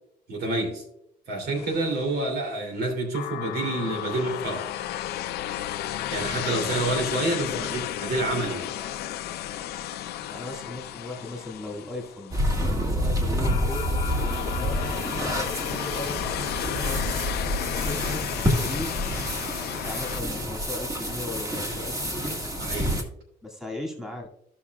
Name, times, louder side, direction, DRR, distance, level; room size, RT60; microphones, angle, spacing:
voice 1, 0.3-0.8 1.3-4.7 6.1-8.7 22.6-22.9, right 2 dB, 70° right, 3 dB, 3.0 m, -28 dB
sound 1, 1.6-2.3 3.1-12.7 13.4-20.2, left 12 dB, 70° left, 0.6 m, -33 dB
voice 2, 7.3-7.6 10.3-12.4 12.8-13.9 14.3-17.0 17.7-18.9 19.8-22.4 23.4-24.3, left 2 dB, 5° right, 0 dB, 2.2 m, -37 dB
sound 2, 12.3-23.0, equal, 20° right, 1.8 m, -28 dB
15.5 x 5.8 x 2.4 m, 0.74 s
cardioid pair, 110°, 17 cm